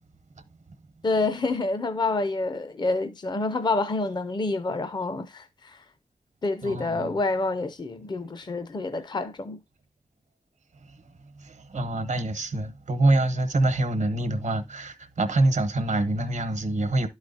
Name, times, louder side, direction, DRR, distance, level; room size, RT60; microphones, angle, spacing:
voice 1, 1.0-5.8 6.4-9.6, left 3 dB, 35° left, 0.5 m, -28 dB
voice 2, 6.6-7.2 11.4-17.1, right 2 dB, 90° right, 1.0 m, -25 dB
11.0 x 4.8 x 2.5 m
wide cardioid pair, 85°, 12 cm